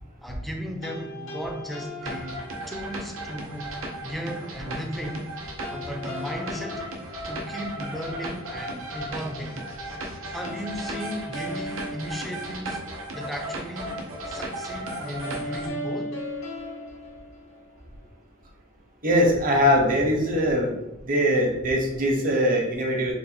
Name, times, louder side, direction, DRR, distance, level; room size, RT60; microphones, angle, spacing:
voice 1, 0.2-2.4 2.7-3.7 4.0-5.3 5.7-6.8 7.2-9.6 10.3-12.8 13.1-14.0 14.3-16.1, equal, ahead, 2 dB, 0.5 m, -35 dB
sound 1, 0.8-3.0 5.6-8.0 10.4-12.9 15.2-18.0, left 1 dB, 75° left, 0.9 m, -38 dB
sound 2, 2.0-15.7, right 1 dB, 85° right, 0.7 m, -36 dB
voice 2, 19.0-20.7 21.0-23.1, equal, 45° right, 0 dB, 0.9 m, -22 dB
3.9 x 2.2 x 4.4 m, 0.89 s
head